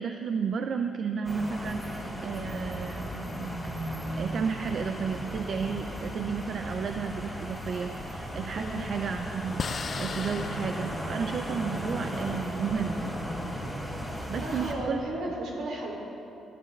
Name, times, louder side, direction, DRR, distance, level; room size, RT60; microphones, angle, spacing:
voice 1, 0.0-3.5 4.1-13.1 14.3-15.0, right 6 dB, 55° right, 7 dB, 0.5 m, -32 dB
sound 1, 1.2-14.7, equal, 5° right, 2.7 m, -36 dB
sound 2, 8.5-13.2, left 5 dB, 45° left, 0.4 m, -40 dB
voice 2, 8.5-8.8 14.4-16.0, right 1 dB, 75° right, -1 dB, 2.8 m, -34 dB
20.5 x 11.5 x 3.3 m, 2.9 s
cardioid pair, 90°, 0 cm